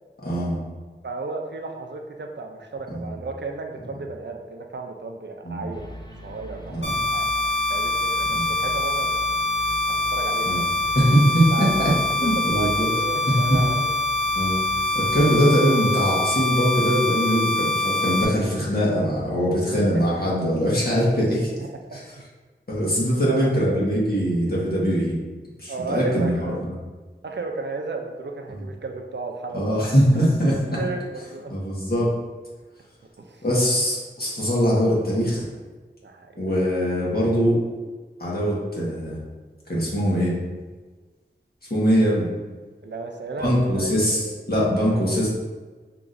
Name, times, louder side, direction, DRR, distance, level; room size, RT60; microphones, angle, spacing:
voice 1, 0.2-0.6 2.9-3.2 5.4-5.7 6.7-6.8 8.3-8.4 10.4-10.6 10.9-11.9 12.2-12.9 14.3-14.6 14.9-21.5 21.9-22.0 22.7-25.2 25.6-26.6 29.5-30.8 31.5-32.1 33.4-35.4 36.4-37.6 38.2-39.2 39.7-40.4 41.7-42.3 43.4-45.3, equal, 55° left, -6 dB, 1.4 m, -22 dB
voice 2, 1.0-5.9 6.2-7.3 7.7-9.1 9.9-10.7 11.5-13.9 21.6-22.0 23.3-23.5 25.7-26.6 27.2-29.9 30.1-30.3 30.8-31.6 33.2-33.4 36.0-36.4 42.8-44.4 44.9-45.3, right 3 dB, 65° right, 3 dB, 0.5 m, -34 dB
sound 1, 5.7-15.4, equal, 20° left, 0.6 m, -40 dB
sound 2, 6.8-18.2, left 2 dB, 75° left, 1.0 m, -24 dB
5.9 x 2.9 x 2.6 m, 1.3 s
wide cardioid pair, 50°, 19 cm